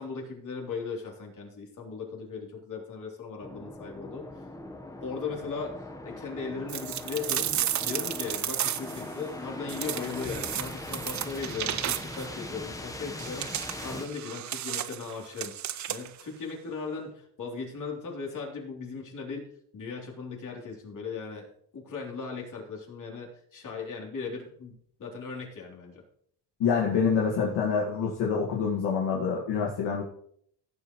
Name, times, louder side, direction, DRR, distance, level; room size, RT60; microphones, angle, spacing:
voice 1, 0.0-4.4 5.0-7.5 7.8-13.5 13.8-15.5 15.9-21.5 21.7-24.7 25.0-26.0, left 5 dB, 45° left, -1 dB, 3.4 m, -38 dB
sound 1, 3.4-14.1, left 1 dB, 10° left, 1.0 m, -40 dB
sound 2, 6.7-9.1 9.7-12.3 13.2-16.2, right 11 dB, 45° right, 0.6 m, -33 dB
voice 2, 26.6-30.0, left 6 dB, 80° left, -2 dB, 1.9 m, -26 dB
16.5 x 7.6 x 3.1 m, 0.65 s
cardioid pair, 120°, 41 cm